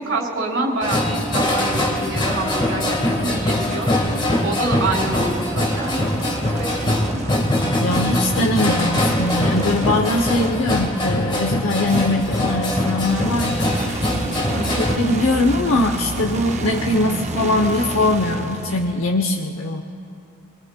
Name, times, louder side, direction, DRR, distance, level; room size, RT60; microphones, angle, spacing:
voice 1, 0.0-3.9 4.4-6.1 6.5-7.3 14.5-14.8, right 2 dB, 85° right, -4 dB, 3.8 m, -27 dB
sound 1, 0.8-15.0, left 1 dB, 20° left, 1.5 m, -22 dB
sound 2, 1.3-2.8 3.7-10.7 11.9-19.2, right 2 dB, 35° right, 0.7 m, -31 dB
voice 2, 7.8-14.1 14.8-19.9, left 2 dB, 85° left, 2 dB, 0.8 m, -21 dB
27.0 x 21.5 x 2.2 m, 2.8 s
head